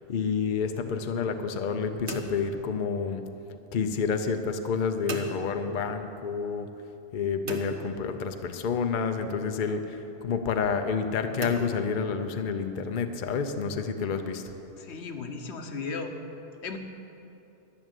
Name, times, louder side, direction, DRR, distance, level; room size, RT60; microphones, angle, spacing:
voice 1, 0.1-3.2 3.7-6.7 7.1-14.5, left 5 dB, 55° left, 7 dB, 0.8 m, -29 dB
sound 1, 2.1-3.4 5.1-6.1 7.5-8.7 11.4-12.6, right 4 dB, 80° right, 1.3 m, -39 dB
voice 2, 14.8-16.1 16.6-16.8, left 4 dB, 85° left, 5 dB, 1.2 m, -35 dB
11.5 x 6.3 x 8.9 m, 2.9 s
omnidirectional pair, 1.1 m